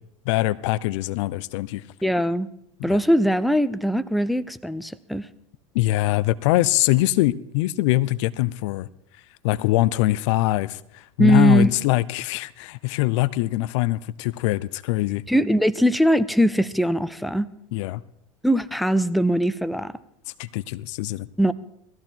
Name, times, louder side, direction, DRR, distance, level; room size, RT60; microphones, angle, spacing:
voice 1, 0.3-1.8 2.9-3.0 5.7-8.9 9.4-15.2 17.7-18.0 20.4-21.3, left 17 dB, 60° left, 19 dB, 0.6 m, -23 dB
voice 2, 2.0-2.5 2.8-5.3 11.2-11.7 15.3-17.5 18.4-19.9 21.4-21.5, equal, ahead, 14 dB, 0.6 m, -20 dB
18.5 x 14.5 x 4.6 m, 0.76 s
hypercardioid pair, 85°, 17 cm